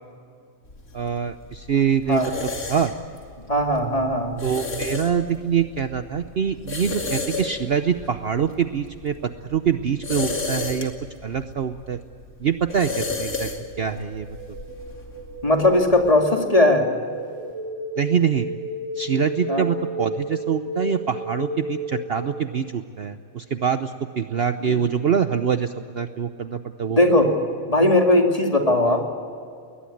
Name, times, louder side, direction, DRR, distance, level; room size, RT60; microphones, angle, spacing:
sound 1, 0.7-16.1, left 3 dB, 75° left, 3.1 m, -34 dB
voice 1, 0.9-2.9 4.4-10.9 11.2-12.0 12.4-13.5 13.8-14.4 18.0-18.5 19.0-27.0, right 7 dB, 50° right, 9 dB, 0.9 m, -24 dB
voice 2, 3.5-4.4 15.4-16.9 19.5-19.6 24.6-24.8 26.9-27.3 27.7-29.0, left 1 dB, 25° left, 2 dB, 2.6 m, -18 dB
sound 2, 13.3-22.6, equal, 55° left, 2.8 m, -34 dB
21.5 x 20.5 x 8.6 m, 2.4 s
omnidirectional pair, 1.5 m